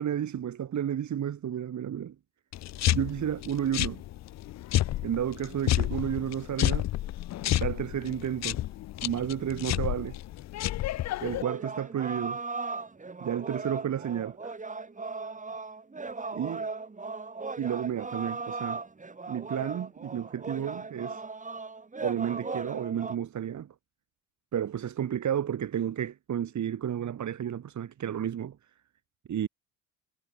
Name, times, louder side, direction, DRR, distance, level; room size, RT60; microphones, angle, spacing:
voice 1, 0.0-2.1 2.9-4.0 5.0-6.9 7.5-8.6 9.0-10.2 11.2-12.4 13.2-14.6 16.3-16.6 17.6-18.8 19.3-21.2 22.0-23.7 24.5-28.6 29.3-29.5, right 9 dB, 45° right, 3.0 m, -32 dB
sound 1, 2.5-11.4, left 14 dB, 40° left, 0.7 m, -30 dB
sound 2, 11.4-23.2, right 4 dB, 20° right, 2.6 m, -37 dB
hypercardioid pair, 60°, 41 cm